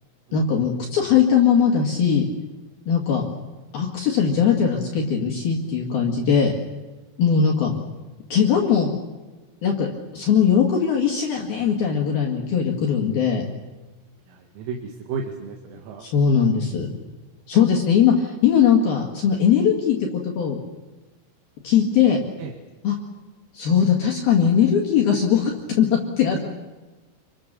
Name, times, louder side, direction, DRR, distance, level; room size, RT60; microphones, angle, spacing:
voice 1, 0.3-2.3 2.9-3.3 3.7-6.5 7.2-7.7 8.3-8.9 9.6-13.4 16.0-16.9 17.5-20.0 20.2-20.6 21.6-22.2 22.8-23.0 23.5-25.5 25.8-26.4, left 7 dB, 55° left, 0 dB, 3.5 m, -20 dB
voice 2, 14.3-16.1 22.4-22.5, right 5 dB, 85° right, 2 dB, 4.6 m, -33 dB
28.5 x 24.5 x 6.8 m, 1.2 s
omnidirectional pair, 5.9 m